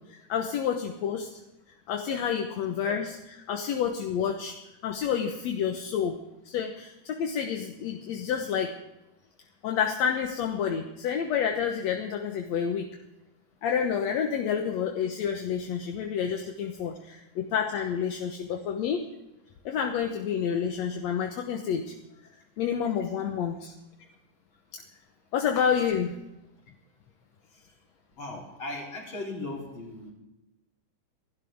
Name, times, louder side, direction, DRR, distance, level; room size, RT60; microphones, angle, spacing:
voice 1, 0.1-1.4 1.9-4.6 4.8-6.2 6.5-8.8 9.6-12.9 13.6-19.1 19.7-21.9 22.6-23.7 25.3-26.2, left 7 dB, 65° left, 4 dB, 2.0 m, -29 dB
voice 2, 28.2-30.1, left 2 dB, 35° left, -1 dB, 4.1 m, -37 dB
28.0 x 12.0 x 3.6 m, 0.94 s
omnidirectional pair, 3.8 m